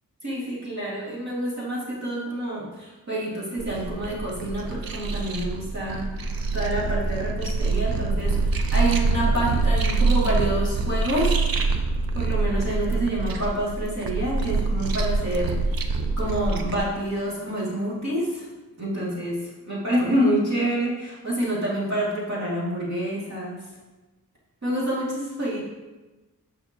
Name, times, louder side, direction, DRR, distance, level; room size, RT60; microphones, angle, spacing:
voice 1, 0.2-6.1 6.5-11.4 12.1-15.8 16.2-18.5 18.8-23.6 24.6-25.6, right 1 dB, 45° right, -7 dB, 2.6 m, -27 dB
sound 1, 3.6-16.8, right 3 dB, 70° right, 0.7 m, -25 dB
9.4 x 5.7 x 2.9 m, 1.2 s
wide cardioid pair, 100°, 36 cm